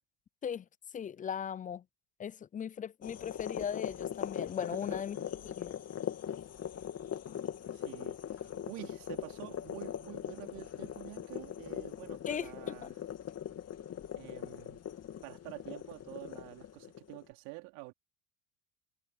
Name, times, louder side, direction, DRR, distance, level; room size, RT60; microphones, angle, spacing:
voice 1, 0.9-1.8 2.2-5.2 5.4-5.8 12.3-12.5, left 8 dB, 20° left, 0.5 m, -38 dB
sound 1, 3.0-17.2, left 9 dB, 40° left, 3.0 m, -41 dB
voice 2, 4.6-5.3 7.7-13.0 14.2-14.8 15.2-17.9, right 27 dB, 70° right, 3.8 m, -48 dB
hypercardioid pair, 85°, 39 cm